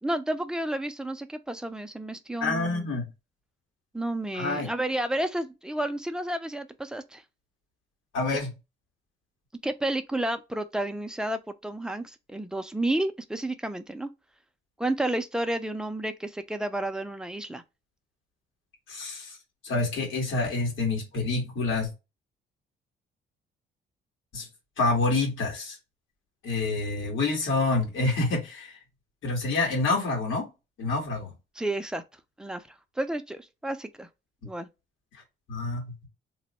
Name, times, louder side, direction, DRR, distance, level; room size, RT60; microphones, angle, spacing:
voice 1, 0.0-2.9 3.9-7.2 9.6-14.1 14.8-17.6 31.6-32.0 32.4-32.6 33.0-34.1 34.4-34.7, right 1 dB, 5° right, 0.5 m, -31 dB
voice 2, 2.4-3.1 4.3-4.7 8.1-8.5 18.9-19.4 19.6-21.9 24.3-24.5 24.8-25.7 26.4-28.7 29.2-30.5 30.8-31.3 35.5-35.9, left 3 dB, 80° left, 1.8 m, -27 dB
3.1 x 2.1 x 4.2 m
cardioid pair, 90°, 20 cm